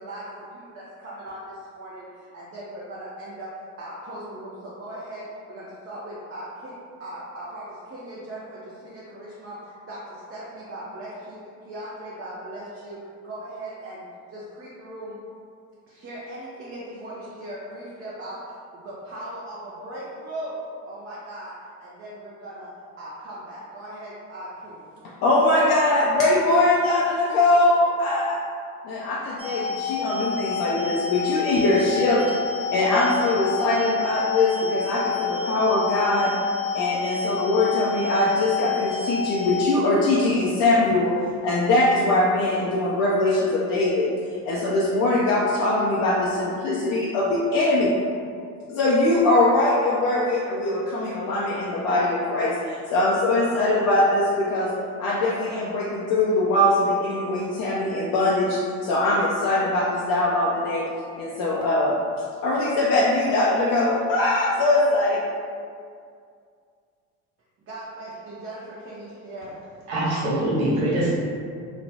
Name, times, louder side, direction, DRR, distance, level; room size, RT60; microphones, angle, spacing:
voice 1, 0.0-6.7 7.0-15.2 15.9-24.8 67.7-69.6, right 1 dB, 30° right, -7 dB, 0.6 m, -38 dB
voice 2, 25.2-28.4 28.8-32.2 32.7-36.3 36.7-41.1 41.4-44.1 44.4-47.9 48.7-54.7 55.0-60.8 61.2-61.9 62.4-65.2, left 2 dB, 50° left, -5 dB, 0.5 m, -22 dB
sound 1, 29.4-39.7, left 5 dB, 15° left, 0.9 m, -29 dB
voice 3, 69.9-71.1, right 1 dB, 85° right, -7 dB, 1.0 m, -23 dB
3.0 x 2.1 x 2.7 m, 2.2 s
hypercardioid pair, 70°, 43 cm